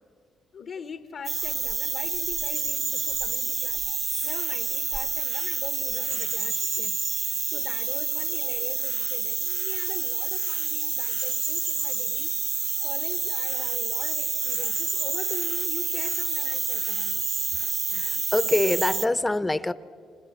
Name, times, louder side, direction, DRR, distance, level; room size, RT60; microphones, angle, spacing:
voice 1, 0.5-3.8 4.2-12.3 12.8-17.2, left 6 dB, 60° left, 9 dB, 1.1 m, -42 dB
sound 1, 1.3-19.1, right 5 dB, 40° right, 0.7 m, -28 dB
voice 2, 17.9-19.7, left 2 dB, 15° left, 15 dB, 0.8 m, -25 dB
30.0 x 25.5 x 7.3 m, 2.4 s
cardioid pair, 90°, 0 cm